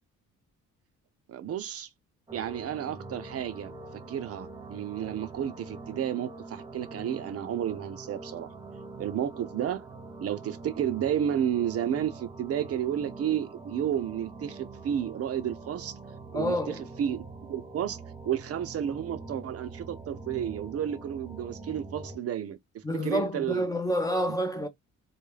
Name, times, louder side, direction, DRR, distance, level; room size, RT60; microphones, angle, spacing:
voice 1, 1.3-1.9 2.3-8.5 9.0-9.8 10.2-15.9 16.3-23.6, right 10 dB, 50° right, 0.5 m, -32 dB
sound 1, 2.3-22.2, right 3 dB, 15° right, 0.7 m, -44 dB
voice 2, 16.3-16.9 22.8-24.7, equal, 10° left, 0.5 m, -28 dB
2.3 x 2.2 x 3.1 m
cardioid pair, 90°, 30 cm